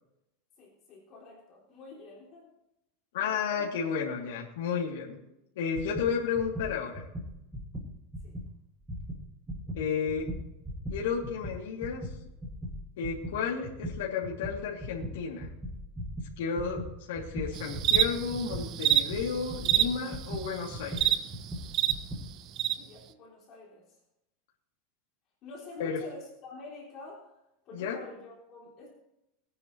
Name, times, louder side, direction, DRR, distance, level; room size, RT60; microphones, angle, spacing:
voice 1, 0.6-2.5 3.2-4.0 8.2-8.4 22.7-24.0 25.4-27.3 27.6-28.9, left 3 dB, 30° left, -3 dB, 3.3 m, -48 dB
voice 2, 3.1-5.2 5.6-7.0 9.7-10.3 10.9-12.1 13.0-15.5 16.4-16.8 17.1-21.1 25.8-26.0 27.7-28.0, left 6 dB, 80° left, -3 dB, 2.9 m, -32 dB
sound 1, 5.7-8.5 8.8-22.3, equal, 5° right, 2.2 m, -39 dB
sound 2, 17.5-21.9 22.6-22.7, right 12 dB, 35° right, 0.6 m, -27 dB
20.5 x 9.6 x 3.2 m, 0.86 s
supercardioid pair, 165°, 0 cm